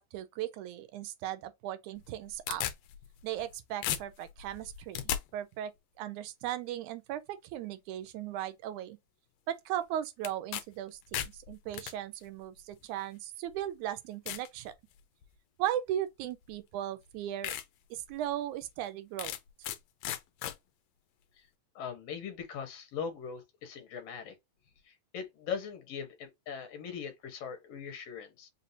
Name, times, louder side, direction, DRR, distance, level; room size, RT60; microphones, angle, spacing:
voice 1, 0.0-2.7 3.2-5.0 5.3-5.7 6.0-9.0 9.5-14.7 15.6-17.5 17.9-19.3, right 12 dB, 80° right, 2.1 m, -37 dB
sound 1, 2.0-3.5 3.8-5.2 10.2-10.6 10.9-11.9 12.8-12.9 13.5-13.6 14.3-14.5 15.0-15.3 16.5-16.6 17.0-17.1 17.4-17.6 18.1-18.2 19.2-19.8 20.0-20.5, left 12 dB, 75° left, 1.8 m, -36 dB
voice 2, 21.8-24.4 24.9-28.5, left 7 dB, 60° left, 1.9 m, -40 dB
5.5 x 2.7 x 2.7 m
omnidirectional pair, 3.4 m